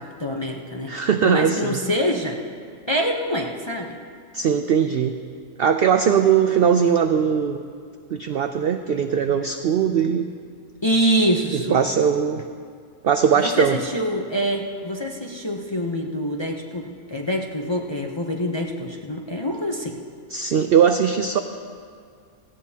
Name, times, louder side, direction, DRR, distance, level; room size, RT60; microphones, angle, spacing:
voice 1, 0.0-0.9 1.2-2.4 2.9-4.0 10.8-11.8 13.4-20.0, equal, 30° left, 0 dB, 0.5 m, -25 dB
voice 2, 0.9-1.8 4.3-5.2 5.6-7.6 8.1-10.3 11.5-12.4 13.0-13.8 20.3-21.4, right 7 dB, 75° right, 7 dB, 0.5 m, -20 dB
17.0 x 16.0 x 2.8 m, 2.2 s
omnidirectional pair, 1.5 m